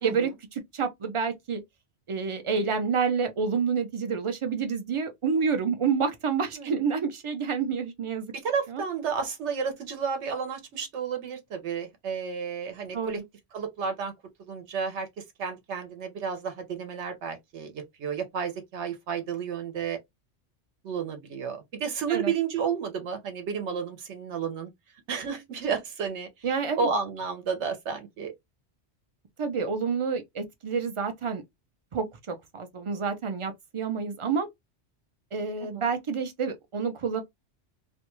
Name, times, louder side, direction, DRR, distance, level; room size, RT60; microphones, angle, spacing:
voice 1, 0.0-1.6 2.1-8.3 8.7-8.8 12.9-13.2 22.1-22.3 26.4-26.9 29.4-31.4 31.9-34.5 35.3-37.2, right 5 dB, 55° right, 0.3 m, -28 dB
voice 2, 8.3-13.2 13.5-14.1 14.4-20.0 20.8-24.7 25.1-26.5 26.8-28.3 35.6-35.9, right 6 dB, 85° right, 1.0 m, -32 dB
2.5 x 2.2 x 2.9 m
omnidirectional pair, 1.2 m